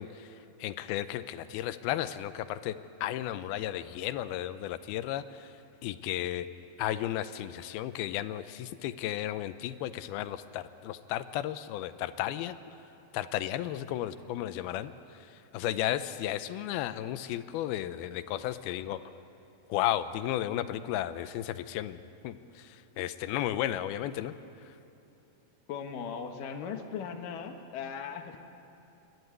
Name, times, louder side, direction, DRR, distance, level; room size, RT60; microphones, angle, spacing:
voice 1, 0.0-2.8 3.0-5.5 5.8-6.5 6.8-12.6 13.1-19.0 19.7-24.3 24.6-24.7, left 12 dB, 85° left, 12 dB, 2.6 m, -34 dB
voice 2, 25.7-28.4, left 7 dB, 65° left, 5 dB, 2.7 m, -38 dB
29.0 x 13.0 x 9.4 m, 2.8 s
omnidirectional pair, 4.4 m